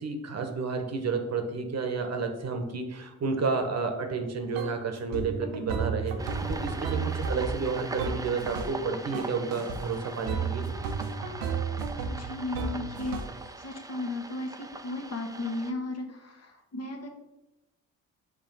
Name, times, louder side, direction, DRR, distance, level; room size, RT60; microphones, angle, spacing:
voice 1, 0.0-10.7, right 4 dB, 50° right, 5 dB, 1.0 m, -31 dB
sound 1, 4.5-4.8 5.1-8.9 9.1-9.8 10.3-13.4, right 5 dB, 90° right, 0.8 m, -33 dB
sound 2, 6.2-15.7, right 2 dB, 10° right, 0.5 m, -41 dB
voice 2, 12.1-13.2 13.6-17.1, left 2 dB, 45° left, 2 dB, 1.4 m, -35 dB
5.3 x 3.3 x 5.4 m, 0.98 s
supercardioid pair, 65°, 35 cm